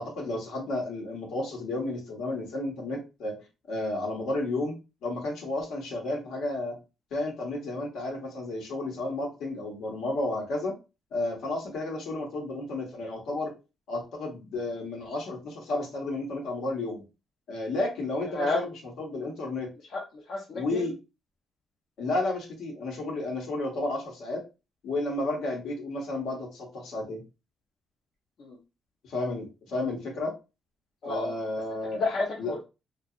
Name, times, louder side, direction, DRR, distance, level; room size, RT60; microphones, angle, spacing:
voice 1, 0.0-3.4 3.7-4.7 5.0-6.7 7.1-10.7 11.1-13.5 13.9-17.0 17.5-19.7 20.5-20.9 22.0-24.4 24.8-27.2 29.0-30.3 31.0-32.0 32.4-32.5, left 2 dB, 80° left, 0 dB, 1.0 m, -32 dB
voice 2, 20.3-20.8 28.4-28.6 31.0-31.3 31.9-32.6, left 3 dB, 60° left, -3 dB, 0.7 m, -30 dB
2.7 x 2.3 x 2.4 m, 0.28 s
cardioid pair, 90°, 0 cm